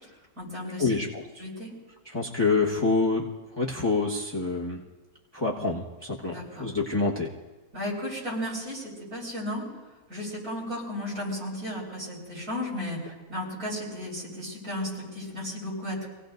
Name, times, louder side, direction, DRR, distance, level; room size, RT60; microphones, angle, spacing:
voice 1, 0.0-0.9 1.4-1.7 6.2-6.7 7.7-9.6 10.1-16.1, left 1 dB, 70° right, -5 dB, 6.4 m, -34 dB
voice 2, 0.8-1.2 2.0-4.8 5.3-7.3, left 3 dB, 15° left, -3 dB, 1.3 m, -27 dB
27.0 x 18.0 x 2.6 m, 1.2 s
omnidirectional pair, 1.6 m